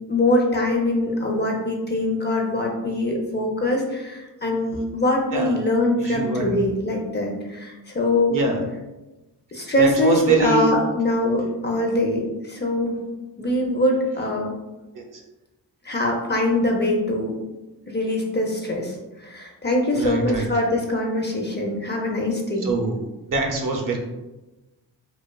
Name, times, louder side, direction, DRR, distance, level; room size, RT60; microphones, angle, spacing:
voice 1, 0.1-8.4 9.5-13.0 13.4-14.5 15.8-17.3 17.9-22.7, left 1 dB, 25° left, -1 dB, 0.5 m, -23 dB
voice 2, 6.0-6.4 8.3-8.6 9.8-10.8 14.9-15.0 19.9-20.5 22.6-23.0 23.3-24.0, right 3 dB, 50° right, 1 dB, 0.6 m, -23 dB
2.4 x 2.3 x 2.2 m, 1.1 s
supercardioid pair, 45°, 42 cm